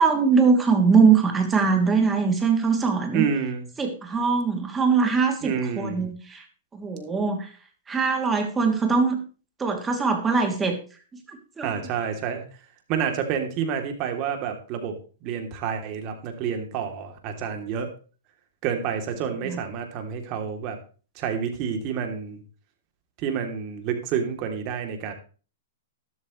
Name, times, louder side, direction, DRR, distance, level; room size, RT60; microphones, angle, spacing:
voice 1, 0.0-3.3 3.8-6.4 6.7-7.5 7.9-9.2 9.6-10.8 11.3-11.7 19.4-19.6, right 5 dB, 15° right, 4 dB, 2.9 m, -22 dB
voice 2, 3.1-3.7 5.4-6.0 11.6-12.5 12.9-14.9 15.2-17.9 18.6-20.8 21.1-22.4 23.2-25.1, right 7 dB, 40° right, 5 dB, 3.2 m, -29 dB
12.5 x 12.5 x 3.3 m, 0.37 s
hypercardioid pair, 130°, 0 cm